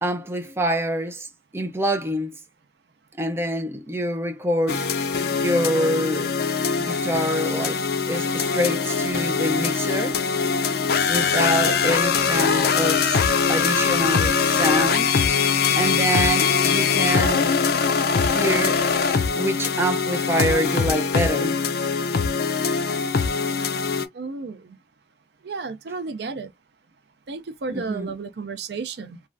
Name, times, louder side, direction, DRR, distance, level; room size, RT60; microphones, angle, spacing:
voice 1, 0.0-1.3 1.5-2.3 3.2-4.9 5.3-6.3 6.8-10.2 11.1-13.2 13.5-15.2 15.7-17.5 18.2-18.8 19.4-21.6 27.7-28.1, equal, 15° right, 0.4 m, -26 dB
sound 1, 4.7-24.1, left 5 dB, 60° left, 0.4 m, -22 dB
voice 2, 24.1-24.8 25.4-26.5 27.3-29.2, right 4 dB, 70° right, 0.5 m, -32 dB
3.2 x 2.4 x 2.5 m
head